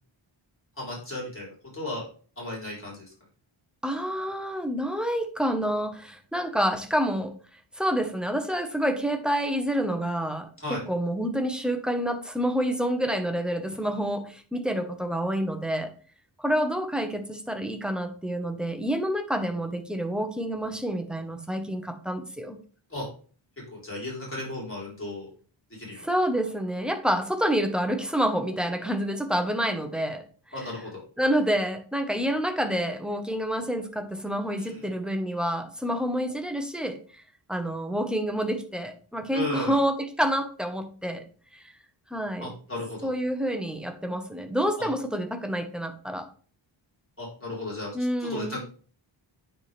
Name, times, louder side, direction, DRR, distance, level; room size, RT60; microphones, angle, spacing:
voice 1, 0.8-2.0 2.4-3.1 10.6-10.8 22.9-23.0 23.7-25.3 25.7-26.1 30.5-31.0 34.6-34.8 39.3-39.8 42.4-43.1 44.8-44.9 47.2-48.7, left 2 dB, 25° left, -5 dB, 4.0 m, -35 dB
voice 2, 3.8-7.3 7.7-15.9 16.4-22.6 26.0-30.7 31.2-37.0 37.5-41.2 42.1-42.5 43.0-46.3 47.9-48.6, equal, ahead, 6 dB, 1.0 m, -28 dB
9.3 x 4.3 x 3.4 m, 0.41 s
wide cardioid pair, 90°, 47 cm